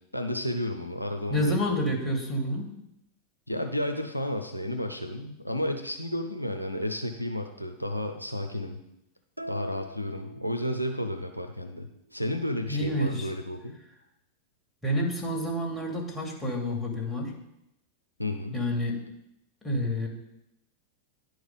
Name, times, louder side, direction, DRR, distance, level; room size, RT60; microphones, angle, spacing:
voice 1, 0.1-1.9 3.5-8.8 9.5-13.8 18.2-18.6, left 1 dB, 90° left, 7 dB, 0.7 m, -32 dB
voice 2, 1.3-2.7 12.7-13.3 14.8-17.3 18.5-19.0 19.6-20.1, equal, 10° left, 0 dB, 2.5 m, -28 dB
sound 1, 9.4-11.2, equal, 90° right, 0.5 m, -41 dB
10.5 x 4.8 x 5.4 m, 0.82 s
figure-of-eight pair, 90°, 0 cm